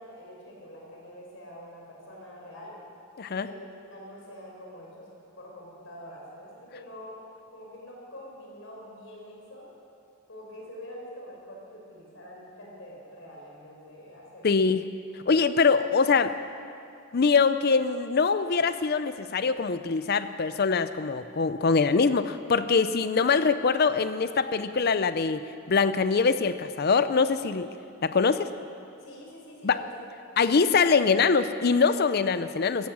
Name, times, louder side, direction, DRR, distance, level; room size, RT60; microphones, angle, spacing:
voice 1, 0.0-2.8 3.3-5.1 5.4-7.2 7.5-9.7 10.3-14.5 29.0-29.9, equal, 65° left, -2 dB, 4.6 m, -45 dB
voice 2, 14.4-14.8 15.3-16.3 17.1-27.7 28.0-28.5 29.6-29.7 30.4-32.9, left 5 dB, 50° left, 12 dB, 0.5 m, -23 dB
16.0 x 14.5 x 6.2 m, 2.5 s
head